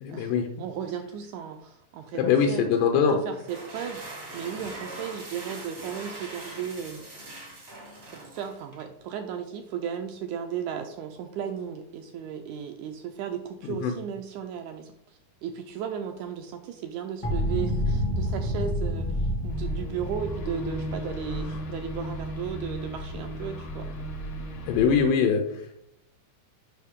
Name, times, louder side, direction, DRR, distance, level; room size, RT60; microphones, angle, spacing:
voice 1, 0.0-0.5 2.2-3.1 13.8-13.9 24.7-25.4, left 7 dB, 90° left, 3 dB, 2.3 m, -22 dB
voice 2, 0.6-2.7 2.9-7.0 8.1-23.9, right 8 dB, 80° right, 6 dB, 1.7 m, -35 dB
sound 1, 3.3-8.9, right 2 dB, 45° right, 0.8 m, -42 dB
sound 2, 17.2-22.9, equal, 25° left, 0.7 m, -29 dB
sound 3, 19.5-25.0, equal, 70° left, 1.2 m, -36 dB
7.3 x 5.4 x 3.6 m, 0.75 s
omnidirectional pair, 3.8 m